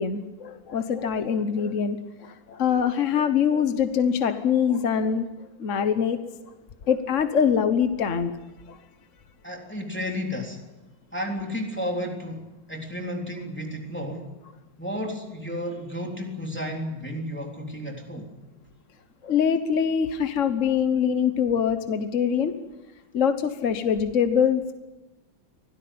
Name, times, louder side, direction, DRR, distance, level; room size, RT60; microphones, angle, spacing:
voice 1, 0.0-2.0 2.2-5.3 5.6-6.2 6.9-8.3 19.2-22.5 23.1-24.7, left 7 dB, 45° left, 9 dB, 1.2 m, -23 dB
voice 2, 9.4-10.6 11.1-14.3 14.8-18.3, equal, 5° left, 1 dB, 3.4 m, -32 dB
25.0 x 17.0 x 8.6 m, 1.1 s
omnidirectional pair, 2.1 m